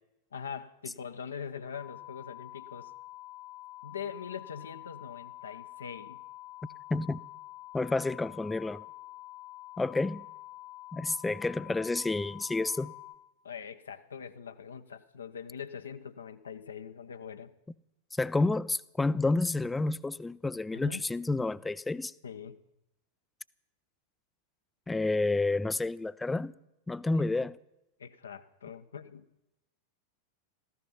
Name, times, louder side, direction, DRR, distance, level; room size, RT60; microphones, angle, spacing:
voice 1, 0.3-2.9 3.8-6.2 13.4-17.5 20.7-21.0 22.2-22.6 27.1-27.2 28.0-29.2, left 7 dB, 70° left, 0.9 m, -42 dB
sound 1, 1.7-13.2, left 18 dB, 25° left, 1.0 m, -47 dB
voice 2, 6.9-7.2 7.7-8.8 9.8-10.2 10.9-12.9 18.1-22.1 24.9-26.5 26.9-27.6, left 2 dB, 10° left, 0.4 m, -30 dB
15.0 x 14.5 x 5.8 m
figure-of-eight pair, 90°, 0 cm